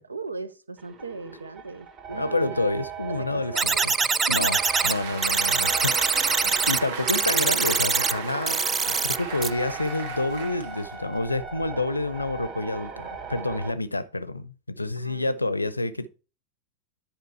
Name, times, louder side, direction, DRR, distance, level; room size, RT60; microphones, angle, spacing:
voice 1, 0.0-2.7 3.2-3.8 4.2-4.6 15.0-15.3, right 3 dB, 80° right, 0.7 m, -38 dB
sound 1, 0.8-13.7, right 5 dB, 30° right, 1.7 m, -39 dB
voice 2, 2.1-3.9 4.3-4.6 4.8-16.1, left 2 dB, 85° left, 0.6 m, -28 dB
sound 2, 3.6-4.9 5.2-6.8 7.1-8.1 8.5-9.2 9.4-9.5, right 5 dB, 15° right, 0.3 m, -23 dB
Applause, 4.0-11.2, right 5 dB, 55° right, 1.6 m, -35 dB
10.5 x 5.0 x 4.6 m
figure-of-eight pair, 90°, 0 cm